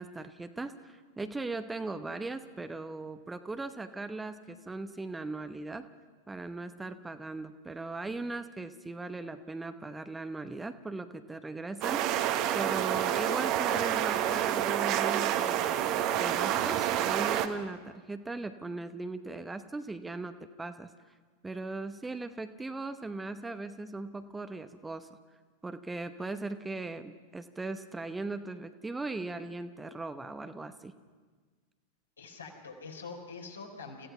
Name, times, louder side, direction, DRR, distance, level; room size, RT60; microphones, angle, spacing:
voice 1, 0.0-5.9 6.3-12.3 12.5-20.3 20.6-20.9 21.4-25.1 25.6-30.9, right 3 dB, 10° right, 10 dB, 0.9 m, -39 dB
sound 1, 11.8-17.5, right 11 dB, 40° right, 1.3 m, -28 dB
voice 2, 32.2-34.1, left 4 dB, 75° left, 0 dB, 4.3 m, -44 dB
29.5 x 16.0 x 5.8 m, 1.4 s
figure-of-eight pair, 90°, 0 cm